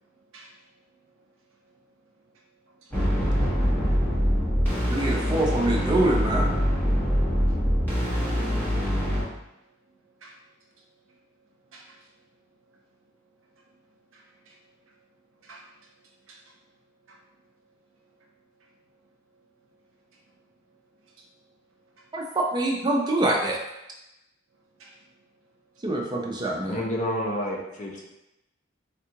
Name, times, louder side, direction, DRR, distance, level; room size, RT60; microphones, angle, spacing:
voice 1, 0.2-0.6 1.6-2.1 2.6-3.0 3.4-4.1 4.8-5.1 7.5-7.6 8.8-9.0 9.9-10.4 10.8-11.2 11.7-12.1 12.7-12.8 13.5-13.7 14.1-14.8 15.4-15.9 16.2-16.6 17.1-17.2 18.2-18.3 18.6-18.7 20.1-20.2 21.0-21.3 21.9-22.1 24.8-25.0, right 2 dB, 70° right, 0 dB, 0.6 m, -54 dB
sound 1, 2.9-9.2, equal, 10° left, 0.9 m, -24 dB
voice 2, 4.9-6.5 22.1-23.6 25.8-26.8, right 1 dB, 20° right, -1 dB, 0.4 m, -25 dB
voice 3, 26.7-28.0, equal, 40° left, -1 dB, 0.5 m, -29 dB
3.6 x 2.3 x 2.8 m, 0.90 s
head